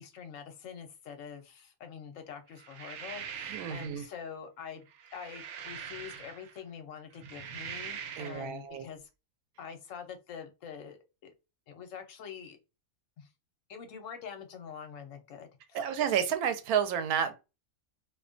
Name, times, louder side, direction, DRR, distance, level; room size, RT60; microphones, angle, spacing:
voice 1, 0.0-4.8 5.1-9.1 9.6-11.0 11.7-12.6 13.2-13.3 13.7-15.8, left 7 dB, 70° left, 1.0 m, -45 dB
sound 1, 2.6-4.1 4.9-6.6 7.1-8.5, right 7 dB, 65° right, 0.7 m, -43 dB
voice 2, 3.5-4.0 8.2-8.8 15.7-17.3, right 8 dB, 90° right, 1.1 m, -30 dB
2.5 x 2.2 x 2.4 m
omnidirectional pair, 1.5 m